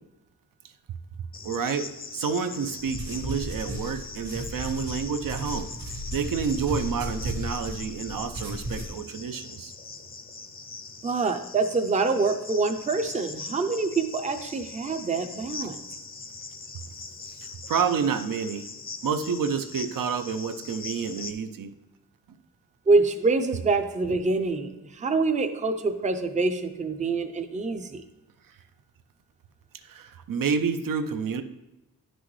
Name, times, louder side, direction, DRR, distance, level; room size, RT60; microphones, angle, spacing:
Cricket, 1.3-21.3, left 4 dB, 30° left, 0.5 m, -41 dB
voice 1, 1.4-5.7 6.1-9.7 17.3-17.4 17.6-18.7 19.0-21.7 29.8-31.4, right 6 dB, 80° right, 9 dB, 0.6 m, -29 dB
sound 1, 2.8-8.9, equal, 60° right, 1.9 m, -35 dB
voice 2, 11.0-15.8 22.9-28.0, right 3 dB, 25° right, 7 dB, 0.5 m, -25 dB
10.0 x 6.1 x 3.1 m, 0.96 s
wide cardioid pair, 155°, 33 cm